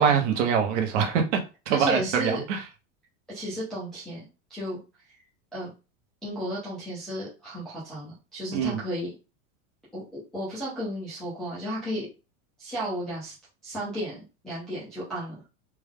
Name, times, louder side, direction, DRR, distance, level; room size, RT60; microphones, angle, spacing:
voice 1, 0.0-1.4 1.7-2.6 8.5-8.8, right 7 dB, 55° right, 1.0 m, -24 dB
voice 2, 1.7-2.4 3.3-4.2 4.5-4.8 5.5-5.7 6.2-9.1 9.9-12.1 12.6-13.3 13.6-15.4, equal, ahead, 0.3 m, -33 dB
3.5 x 2.3 x 3.5 m
supercardioid pair, 175°, 42 cm